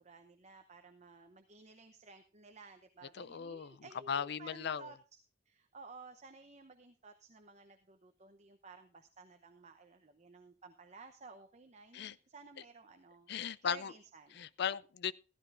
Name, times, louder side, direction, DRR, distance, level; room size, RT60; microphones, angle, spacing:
voice 1, 0.0-5.2 5.5-13.3 13.6-14.5, right 3 dB, 35° right, 0.8 m, -55 dB
voice 2, 3.2-3.8 4.1-4.9 11.9-12.2 13.3-13.9 14.3-15.1, left 7 dB, 60° left, 0.4 m, -37 dB
15.0 x 13.5 x 2.6 m
head